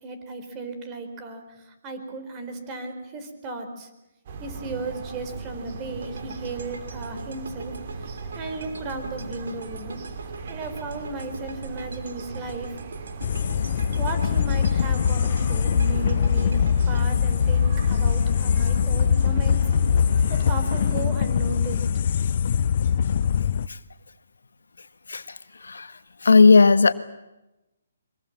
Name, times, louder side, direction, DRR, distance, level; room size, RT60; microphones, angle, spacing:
voice 1, 0.0-3.9 4.4-10.0 10.5-12.8 13.9-16.6 16.9-19.6 20.3-21.9, right 3 dB, 25° right, 7 dB, 4.6 m, -35 dB
sound 1, 4.3-20.9, right 5 dB, 45° right, 3.1 m, -39 dB
sound 2, 6.0-18.2, right 3 dB, 75° right, 3.9 m, -43 dB
sound 3, 13.2-23.7, left 7 dB, 50° left, 0.8 m, -22 dB
voice 2, 26.2-26.9, left 4 dB, 85° left, 12 dB, 1.5 m, -14 dB
24.0 x 23.5 x 7.6 m, 0.95 s
hypercardioid pair, 150°, 0 cm